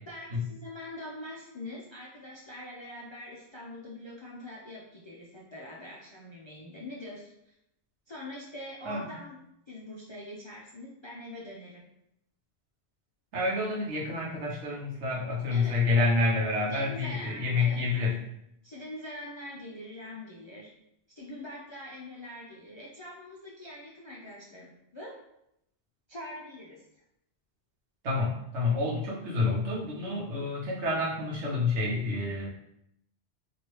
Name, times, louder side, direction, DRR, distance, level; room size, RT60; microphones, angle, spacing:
voice 1, 0.1-7.5 8.1-9.4 9.7-11.8 15.5-15.8 16.7-17.8 18.6-20.7 21.2-25.1 26.1-26.9, left 1 dB, 45° left, -5 dB, 0.4 m, -43 dB
voice 2, 13.3-18.1 28.0-32.5, left 3 dB, 85° right, -3 dB, 1.2 m, -28 dB
3.0 x 2.7 x 3.1 m, 0.78 s
omnidirectional pair, 1.1 m